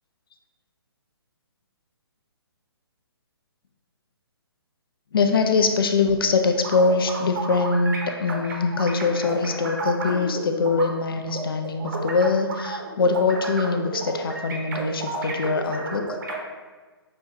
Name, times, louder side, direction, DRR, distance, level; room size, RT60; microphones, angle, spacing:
voice 1, 5.1-16.2, left 4 dB, 60° left, 7 dB, 0.4 m, -23 dB
sound 1, 6.5-10.9 11.3-16.3, right 3 dB, 50° right, 0.9 m, -32 dB
6.3 x 2.3 x 2.8 m, 1.3 s
figure-of-eight pair, 135°, 14 cm